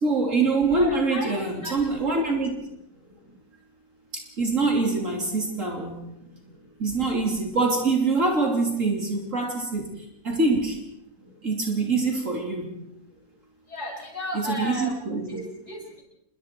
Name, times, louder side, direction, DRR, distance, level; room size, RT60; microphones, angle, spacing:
voice 1, 0.0-2.6 4.1-6.1 6.8-9.9 10.2-10.8 11.4-12.7 14.4-15.4, right 3 dB, 55° right, 1 dB, 3.5 m, -24 dB
voice 2, 0.7-1.3 1.6-2.2 13.7-15.0 15.3-16.0, equal, 45° left, -3 dB, 6.8 m, -35 dB
27.5 x 22.5 x 4.6 m, 0.82 s
omnidirectional pair, 1.6 m